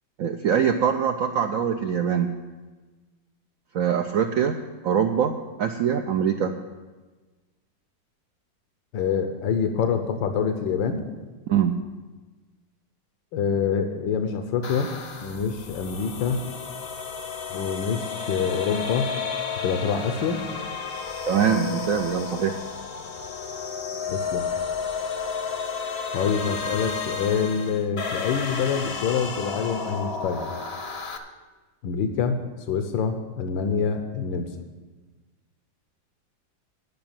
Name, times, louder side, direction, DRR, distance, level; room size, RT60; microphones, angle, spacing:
voice 1, 0.2-2.4 3.7-4.6 4.8-6.6 11.5-11.8 21.3-22.6, right 8 dB, 80° right, 5 dB, 0.7 m, -23 dB
voice 2, 8.9-11.0 13.3-14.9 15.2-16.4 17.5-19.1 19.6-20.4 24.1-24.5 26.1-30.5 31.8-32.4 32.7-34.5, left 6 dB, 80° left, 7 dB, 1.5 m, -26 dB
sound 1, 14.6-31.2, left 6 dB, 50° left, 0.8 m, -32 dB
10.5 x 5.9 x 8.8 m, 1.3 s
omnidirectional pair, 2.0 m